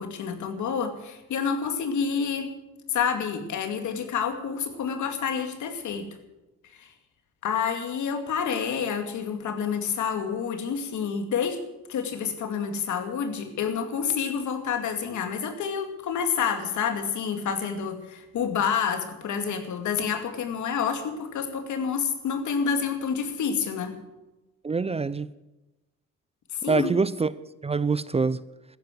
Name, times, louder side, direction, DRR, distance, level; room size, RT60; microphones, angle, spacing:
voice 1, 0.0-2.5 2.9-6.1 6.7-6.9 7.4-11.6 11.9-23.9 26.5-26.9, left 6 dB, 75° left, 2.4 m, -28 dB
voice 2, 24.6-25.3 26.7-27.3 27.6-28.4, right 4 dB, 20° right, 0.5 m, -25 dB
14.0 x 10.5 x 7.7 m
cardioid pair, 90°, 30 cm